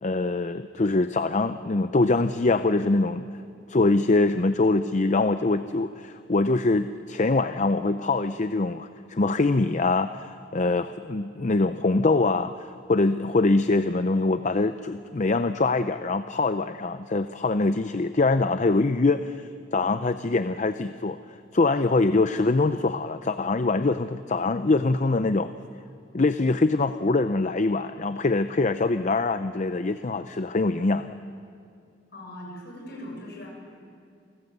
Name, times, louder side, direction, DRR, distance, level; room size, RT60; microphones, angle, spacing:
voice 1, 0.0-3.3 3.7-19.4 19.7-25.5 26.1-31.2, left 3 dB, 40° left, 10 dB, 0.6 m, -24 dB
voice 2, 32.1-33.8, left 1 dB, 60° left, 0 dB, 7.1 m, -40 dB
28.0 x 19.0 x 8.1 m, 2.4 s
head